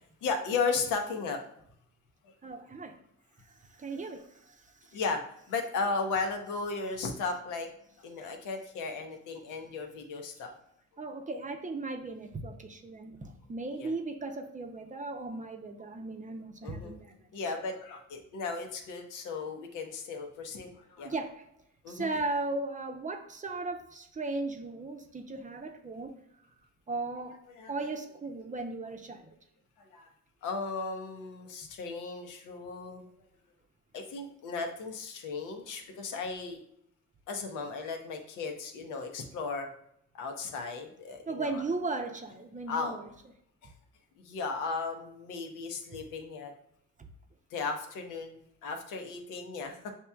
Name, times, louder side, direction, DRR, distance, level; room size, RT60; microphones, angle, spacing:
voice 1, 0.2-1.4 2.2-2.3 4.9-7.7 8.0-10.5 13.7-13.9 16.6-16.9 17.3-21.1 21.8-22.1 27.6-27.7 29.8-30.1 30.4-33.0 33.9-36.6 37.3-39.7 40.1-41.6 42.7-43.0 43.6-43.7 44.2-46.5 47.5-49.9, left 4 dB, 85° left, 4 dB, 0.8 m, -35 dB
voice 2, 2.4-3.0 3.8-4.3 11.0-17.2 21.0-21.4 21.9-26.2 26.9-27.4 27.7-29.3 41.3-43.0, right 3 dB, 25° right, 5 dB, 0.6 m, -36 dB
6.9 x 2.9 x 2.3 m, 0.73 s
cardioid pair, 90°, 30 cm